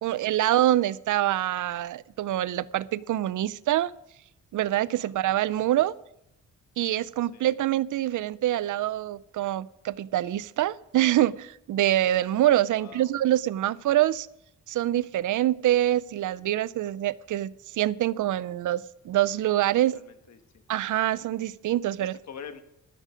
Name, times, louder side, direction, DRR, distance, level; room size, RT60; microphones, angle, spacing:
voice 1, 0.0-3.9 4.5-5.9 6.8-14.3 14.7-20.0 20.7-22.1, right 13 dB, 85° right, 20 dB, 0.5 m, -25 dB
voice 2, 12.8-13.1 19.9-20.6 22.0-22.6, left 7 dB, 65° left, 9 dB, 1.5 m, -45 dB
13.5 x 13.0 x 5.1 m, 0.82 s
wide cardioid pair, 175°, 30 cm